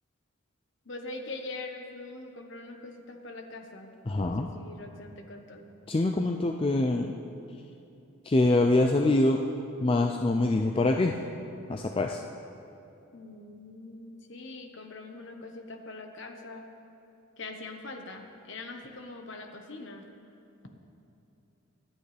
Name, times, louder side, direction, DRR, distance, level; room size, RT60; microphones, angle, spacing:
voice 1, 0.8-5.7 13.1-16.7 17.4-20.0, left 2 dB, 55° left, 4 dB, 1.2 m, -43 dB
voice 2, 4.1-4.5 5.9-7.1 8.2-9.4 9.8-11.2 11.7-12.2, left 2 dB, 25° left, 3 dB, 0.4 m, -24 dB
25.5 x 8.9 x 3.4 m, 2.9 s
head